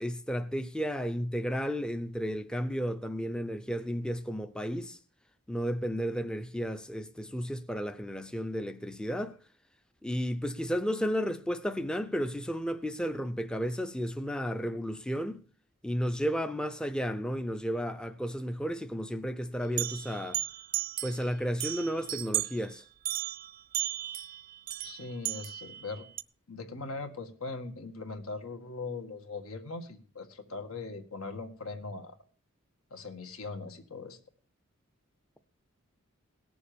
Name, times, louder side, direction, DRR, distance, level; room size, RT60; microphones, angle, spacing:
voice 1, 0.0-5.0 5.5-9.4 10.0-15.4 15.8-20.4 21.0-22.8, equal, 5° left, 0.6 m, -33 dB
sound 1, 19.8-21.2 21.6-22.6 23.1-26.2, right 15 dB, 40° right, 0.5 m, -35 dB
voice 2, 24.8-26.0 26.5-32.2 32.9-34.2, left 3 dB, 80° left, 2.0 m, -40 dB
18.0 x 7.1 x 6.8 m
head